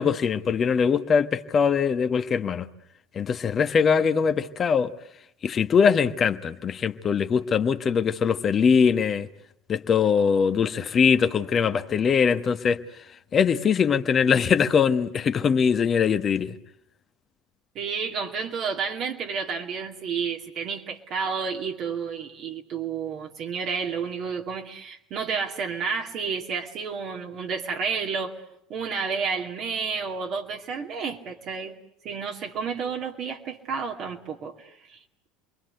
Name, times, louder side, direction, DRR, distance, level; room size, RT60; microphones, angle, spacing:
voice 1, 0.0-2.7 3.1-4.9 5.4-9.3 9.7-12.8 13.3-16.5, left 6 dB, 35° left, 1.3 m, -22 dB
voice 2, 17.7-28.3 28.7-31.8 32.0-35.0, right 5 dB, 50° right, 2.5 m, -31 dB
28.5 x 22.5 x 8.0 m
hypercardioid pair, 80°, 0 cm